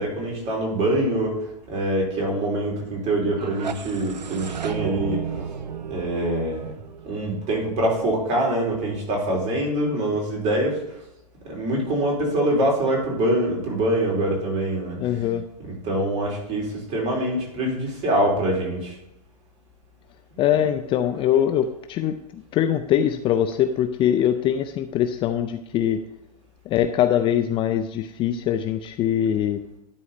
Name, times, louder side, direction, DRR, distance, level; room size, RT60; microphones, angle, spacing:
voice 1, 0.0-5.4 5.9-6.7 7.0-11.0 11.4-15.0 15.6-19.0, right 1 dB, 35° right, -1 dB, 4.0 m, -24 dB
sound 1, 3.2-8.1, right 7 dB, 90° right, 0.7 m, -34 dB
voice 2, 15.0-15.4 20.4-22.2 22.5-26.0 26.7-29.6, left 10 dB, 25° left, 9 dB, 0.5 m, -22 dB
11.5 x 4.7 x 5.4 m, 0.85 s
hypercardioid pair, 115°, 21 cm